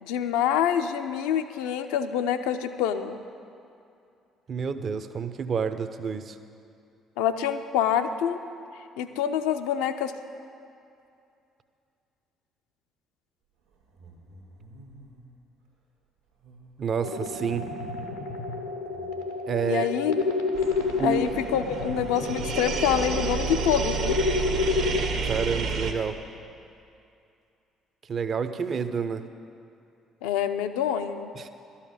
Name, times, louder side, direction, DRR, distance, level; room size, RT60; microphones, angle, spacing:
voice 1, 0.0-3.2 7.2-8.4 9.0-10.1 19.6-20.2 21.0-24.2 30.2-31.3, left 9 dB, 75° left, 8 dB, 0.5 m, -26 dB
voice 2, 4.5-6.4 16.8-17.6 19.5-19.9 21.0-21.2 25.2-26.2 28.1-29.2 31.4-31.5, right 6 dB, 45° right, 10 dB, 0.6 m, -29 dB
sound 1, 13.6-15.4 16.3-18.0 18.9-19.3, right 1 dB, 85° right, 1.6 m, -52 dB
sound 2, 17.0-25.0, left 4 dB, 90° left, 0.8 m, -30 dB
sound 3, 20.5-25.9, right 5 dB, 65° right, 1.0 m, -30 dB
12.0 x 5.7 x 8.8 m, 2.6 s
hypercardioid pair, 50°, 0 cm